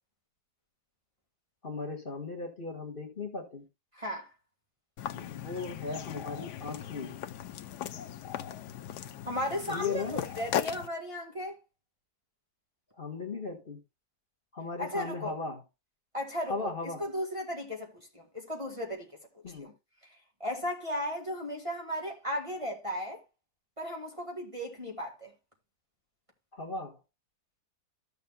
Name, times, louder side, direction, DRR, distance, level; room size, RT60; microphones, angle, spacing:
voice 1, 1.6-3.6 5.1-7.2 9.7-10.2 13.0-13.8 14.5-15.6 16.4-17.0 19.4-19.7 26.5-27.0, left 4 dB, 35° left, 1.6 m, -37 dB
voice 2, 3.9-4.3 9.2-11.6 14.8-15.3 16.1-16.7 17.0-19.1 19.6-19.7 20.4-23.2 23.8-25.3, equal, 20° right, 1.6 m, -35 dB
sound 1, 5.0-10.9, left 10 dB, 80° left, 1.3 m, -38 dB
13.5 x 6.9 x 2.3 m
omnidirectional pair, 1.8 m